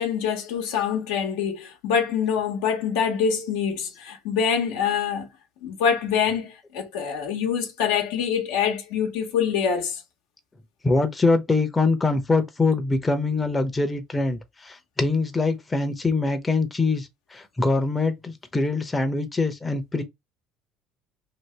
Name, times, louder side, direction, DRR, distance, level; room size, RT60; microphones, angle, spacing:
voice 1, 0.0-5.3 5.6-10.0, left 7 dB, 80° left, 0.8 m, -25 dB
voice 2, 10.8-20.0, left 3 dB, 20° left, 0.7 m, -24 dB
2.8 x 2.7 x 3.2 m
supercardioid pair, 75°, 0 cm